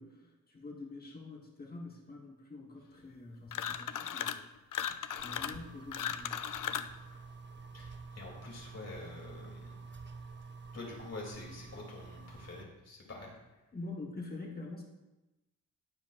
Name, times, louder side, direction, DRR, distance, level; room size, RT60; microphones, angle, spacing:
voice 1, 0.0-4.5 5.2-6.4 13.7-14.8, left 2 dB, 25° left, -1 dB, 1.2 m, -46 dB
sound 1, 3.5-4.4 4.7-7.0, left 9 dB, 65° left, 0.5 m, -37 dB
sound 2, 5.1-12.6, right 4 dB, 30° right, 0.6 m, -49 dB
voice 2, 7.7-9.8 10.7-13.3, left 2 dB, 45° left, -2 dB, 2.9 m, -47 dB
19.5 x 7.2 x 2.5 m, 1.0 s
wide cardioid pair, 170°, 35 cm